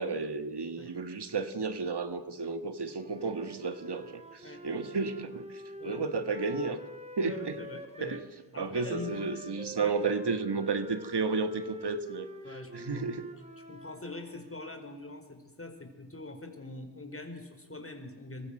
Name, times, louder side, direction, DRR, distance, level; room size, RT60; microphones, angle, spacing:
voice 1, 0.0-6.8 7.2-7.6 8.0-8.2 8.5-12.3 12.7-13.3, right 4 dB, 80° right, 10 dB, 1.8 m, -32 dB
Wind instrument woodwind instrument, 2.8-8.3 8.7-14.6, left 1 dB, 15° right, 2.9 m, -46 dB
voice 2, 7.2-8.2 8.5-9.5 9.8-9.9 12.4-13.1 13.6-18.5, left 2 dB, 35° left, 6 dB, 4.8 m, -43 dB
26.0 x 24.0 x 6.6 m, 1.2 s
wide cardioid pair, 50°, 40 cm